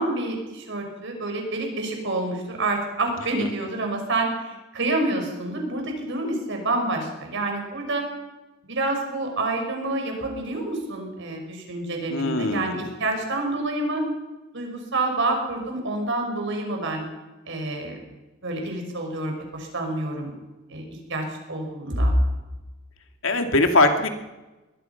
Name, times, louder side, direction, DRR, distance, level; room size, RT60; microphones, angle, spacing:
voice 1, 0.0-8.0 8.6-14.1 14.5-17.1 17.5-18.0 18.4-20.3 20.7-20.8 21.1-22.1, right 2 dB, 60° right, 3 dB, 5.9 m, -28 dB
voice 2, 12.1-12.9 23.2-24.1, left 2 dB, 65° left, 6 dB, 2.3 m, -21 dB
24.0 x 20.0 x 5.8 m, 1.1 s
head